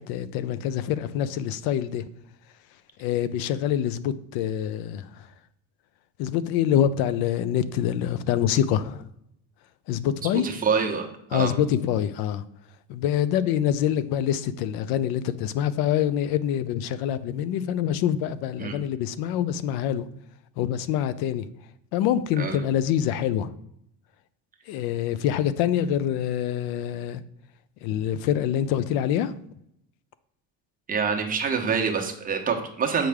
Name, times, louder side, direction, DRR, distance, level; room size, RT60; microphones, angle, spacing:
voice 1, 0.0-2.0 3.0-5.3 6.2-9.0 9.9-10.6 11.3-12.4 12.9-20.1 20.6-21.5 21.9-23.5 24.7-27.2 27.8-29.3, left 10 dB, 80° left, 0.5 m, -25 dB
voice 2, 10.4-11.5 18.6-18.8 22.4-22.6 30.9-33.1, right 6 dB, 25° right, 1.0 m, -26 dB
7.6 x 4.9 x 3.5 m
cardioid pair, 150°, 36 cm